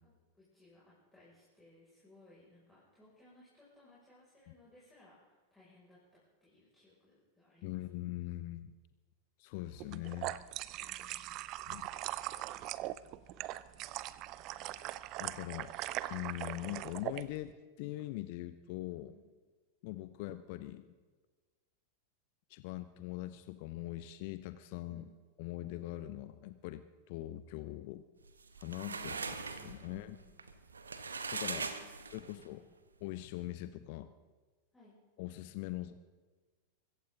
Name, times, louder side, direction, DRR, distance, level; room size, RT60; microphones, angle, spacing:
voice 1, 0.0-7.8 10.8-11.5 12.8-13.5 19.1-19.2 24.9-25.1 28.9-29.3 29.6-30.4 31.5-31.9 32.2-32.7 34.7-35.0, left 1 dB, 10° left, -9 dB, 5.8 m, -62 dB
voice 2, 7.6-8.7 9.4-10.4 11.7-11.9 15.2-15.7 16.1-19.2 19.8-20.9 22.5-25.1 25.4-28.0 28.6-29.1 29.6-30.2 31.3-31.7 32.1-32.6 33.0-34.1 35.2-36.0, left 16 dB, 45° left, 13 dB, 0.6 m, -42 dB
sound 1, 9.8-17.2, right 15 dB, 40° right, 0.5 m, -41 dB
sound 2, 28.3-32.5, right 4 dB, 75° right, 1.1 m, -41 dB
24.0 x 15.0 x 3.8 m, 1.4 s
figure-of-eight pair, 90°, 0 cm